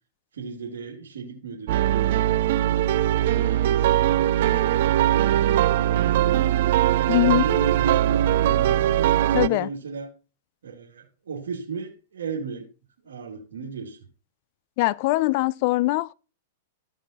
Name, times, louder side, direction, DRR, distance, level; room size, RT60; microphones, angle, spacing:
voice 1, 0.3-6.5 6.9-10.1 10.6-12.7 13.0-14.0, right 5 dB, 85° right, 2.7 m, -34 dB
sound 1, 1.7-9.5, right 13 dB, 60° right, 0.4 m, -21 dB
voice 2, 7.1-7.4 9.3-9.7 14.8-16.1, left 19 dB, 50° left, 0.4 m, -22 dB
14.0 x 5.5 x 4.2 m
hypercardioid pair, 135°, 0 cm